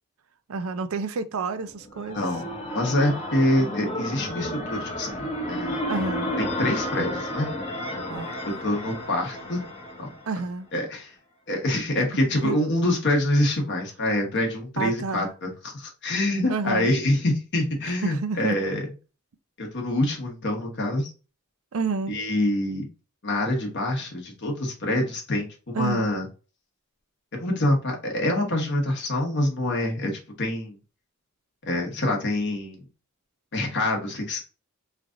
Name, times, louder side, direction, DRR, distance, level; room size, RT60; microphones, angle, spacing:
voice 1, 0.5-2.2 5.9-6.3 8.1-8.3 10.3-10.7 12.4-12.6 14.8-15.3 16.5-16.9 18.0-18.6 21.7-22.2 25.7-26.0, right 4 dB, 70° right, 0.5 m, -29 dB
sound 1, 1.7-10.5, left 1 dB, 25° left, 0.7 m, -32 dB
voice 2, 2.1-2.5 2.7-5.2 5.5-5.8 6.4-7.5 8.6-9.6 10.0-10.1 10.7-11.1 11.5-18.9 19.6-21.1 22.1-22.8 23.2-26.3 27.3-30.1 30.4-30.8 31.7-32.8 33.5-34.4, left 1 dB, 55° left, 1.1 m, -25 dB
3.1 x 2.5 x 3.6 m
head